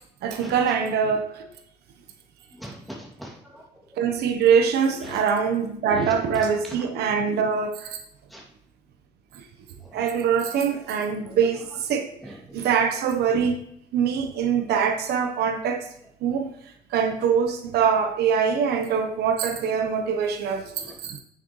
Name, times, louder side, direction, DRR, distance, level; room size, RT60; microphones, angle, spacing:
voice 1, 0.2-1.4 4.0-8.0 9.9-12.1 12.5-13.6 13.9-15.9 16.2-16.5 16.9-21.2, right 7 dB, 75° right, 6 dB, 1.0 m, -23 dB
voice 2, 2.5-3.7 3.9-4.0 5.0-5.2 5.9-6.2 6.6-6.8 8.3-8.4 9.8-10.0 11.2-11.4 12.2-12.4 20.8-21.0, equal, ahead, -3 dB, 2.5 m, -41 dB
9.2 x 6.5 x 3.1 m, 0.72 s
cardioid pair, 110°, 17 cm